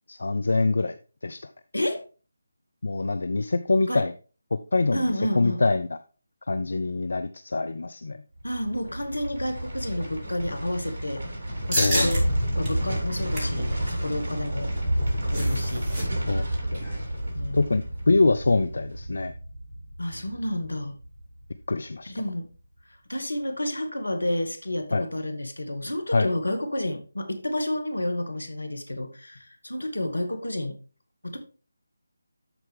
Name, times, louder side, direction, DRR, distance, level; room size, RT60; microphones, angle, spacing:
voice 1, 0.1-1.0 1.2-1.5 2.8-4.1 4.7-5.9 6.5-8.2 11.8-12.1 16.3-16.4 16.7-16.8 17.5-19.3 21.7-22.1 24.9-25.0 26.1-26.3, left 3 dB, 60° left, 11 dB, 0.5 m, -24 dB
voice 2, 1.7-2.0 3.9-4.0 4.9-5.6 8.4-11.3 11.7-12.2 12.6-14.7 15.3-15.9 17.3-17.6 20.0-21.0 22.0-22.5 23.1-30.8 31.2-31.4, left 1 dB, 80° left, 7 dB, 1.8 m, -30 dB
sound 1, 8.4-21.5 21.9-22.0, equal, 45° right, 3.1 m, -30 dB
sound 2, 11.7-12.2 12.6-12.7 13.1-13.6 14.8-16.0 16.3-16.4 16.7-17.0, right 1 dB, 20° right, 4.0 m, -29 dB
13.0 x 4.5 x 3.4 m, 0.34 s
figure-of-eight pair, 155°, 0 cm